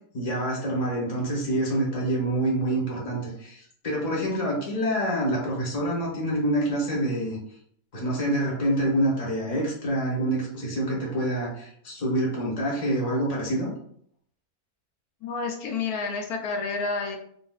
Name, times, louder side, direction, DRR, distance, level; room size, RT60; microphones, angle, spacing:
voice 1, 0.1-7.4 7.9-13.7, right 1 dB, 30° left, -4 dB, 1.0 m, -26 dB
voice 2, 15.2-17.2, left 4 dB, 80° left, 2 dB, 1.1 m, -29 dB
3.9 x 2.4 x 2.3 m, 0.65 s
omnidirectional pair, 1.6 m